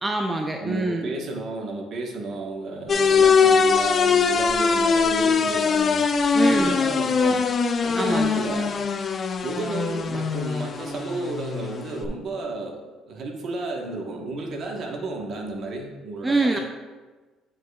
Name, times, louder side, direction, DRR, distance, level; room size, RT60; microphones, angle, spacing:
voice 1, 0.0-1.1 6.3-6.8 7.9-8.4 16.2-16.6, right 2 dB, 15° right, 3 dB, 0.5 m, -25 dB
voice 2, 0.6-6.0 6.3-7.4 7.8-8.8 9.4-12.8 13.1-16.6, right 3 dB, 55° right, 2 dB, 1.2 m, -32 dB
sound 1, 2.9-12.1, left 5 dB, 40° left, 0.4 m, -22 dB
9.0 x 5.0 x 2.3 m, 1.3 s
supercardioid pair, 85°, 0 cm